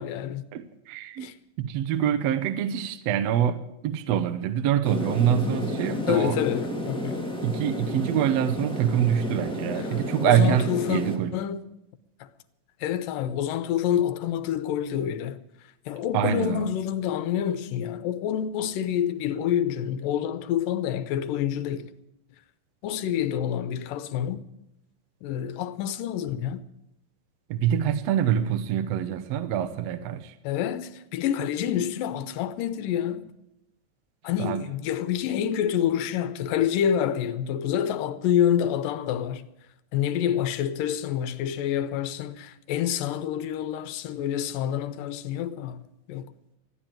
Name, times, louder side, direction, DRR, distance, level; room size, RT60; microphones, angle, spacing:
voice 1, 0.0-0.4 1.2-1.4 6.1-7.3 9.8-11.0 11.3-11.6 12.2-12.3 12.8-15.4 15.9-21.9 22.8-24.4 25.2-26.6 30.4-33.3 34.2-39.5 39.9-46.3, left 10 dB, 80° left, 2.4 m, -27 dB
voice 2, 0.5-1.3 1.6-6.4 7.4-11.4 16.1-16.7 27.5-30.3 34.4-34.6, right 9 dB, 75° right, 1.5 m, -25 dB
sound 1, 4.8-11.2, left 1 dB, 5° left, 0.3 m, -32 dB
14.5 x 10.5 x 9.0 m
omnidirectional pair, 3.9 m